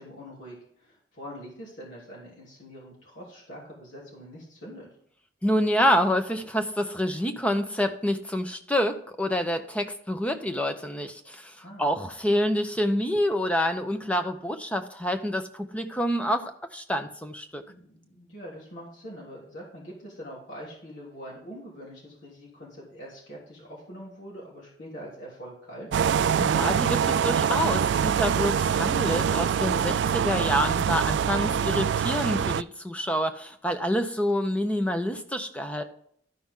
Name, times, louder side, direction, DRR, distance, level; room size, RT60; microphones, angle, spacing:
voice 1, 0.0-4.9 11.6-12.0 17.7-25.9, equal, 85° left, -5 dB, 3.3 m, -44 dB
voice 2, 5.4-17.6 26.4-35.8, equal, 5° left, 7 dB, 0.8 m, -27 dB
sound 1, 25.9-32.6, right 7 dB, 75° right, 0.3 m, -24 dB
13.0 x 5.9 x 3.8 m, 0.65 s
head